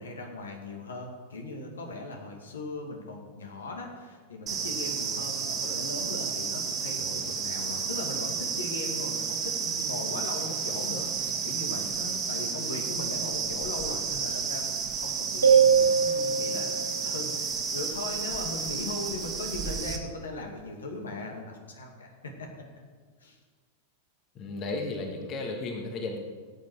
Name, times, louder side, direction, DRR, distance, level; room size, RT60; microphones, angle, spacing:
voice 1, 0.0-22.5 23.2-23.4, left 2 dB, 70° left, 2 dB, 2.0 m, -39 dB
sound 1, 4.5-20.0, right 6 dB, 25° right, 1.7 m, -32 dB
sound 2, 15.4-16.9, right 6 dB, 80° right, 2.2 m, -21 dB
voice 2, 24.4-26.2, left 2 dB, 35° left, 3 dB, 1.6 m, -34 dB
17.0 x 8.5 x 4.7 m, 1.5 s
figure-of-eight pair, 90°, 0 cm